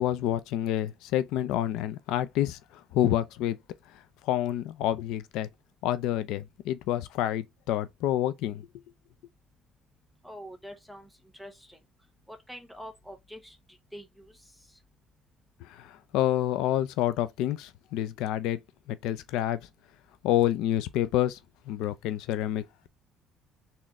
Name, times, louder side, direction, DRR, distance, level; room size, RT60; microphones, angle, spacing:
voice 1, 0.0-3.6 4.2-5.5 5.8-8.6 15.6-18.6 18.9-19.6 20.2-21.4 21.7-22.9, left 12 dB, 80° left, 0.5 m, -28 dB
voice 2, 10.2-11.8 12.3-14.8, equal, ahead, 1.0 m, -46 dB
4.4 x 3.6 x 3.0 m
cardioid pair, 170°, 0 cm